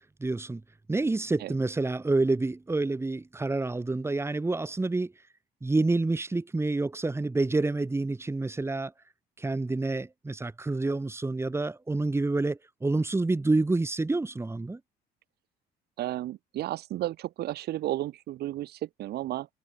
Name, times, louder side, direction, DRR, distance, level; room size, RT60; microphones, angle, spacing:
voice 1, 0.2-0.6 0.9-5.1 5.6-8.9 9.4-14.8, right 2 dB, 15° right, 5.3 m, -28 dB
voice 2, 16.0-19.5, right 14 dB, 70° right, 5.0 m, -33 dB
cardioid pair, 110°, 17 cm